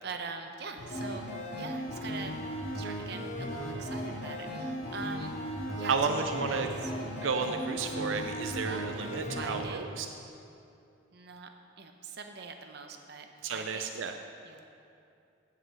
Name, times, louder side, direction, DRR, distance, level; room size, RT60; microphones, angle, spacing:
voice 1, 0.0-2.4 2.6-5.4 5.8-6.6 6.8-6.9 8.4-9.9 11.1-11.5 11.8-13.9 14.4-14.6, right 4 dB, 55° right, 5 dB, 0.8 m, -43 dB
sound 1, 0.7-9.7, equal, 85° left, 2.5 m, -37 dB
voice 2, 5.8-6.7 7.2-10.1 13.4-14.1, right 5 dB, 90° right, 5 dB, 0.5 m, -32 dB
8.1 x 7.7 x 7.6 m, 2.6 s
head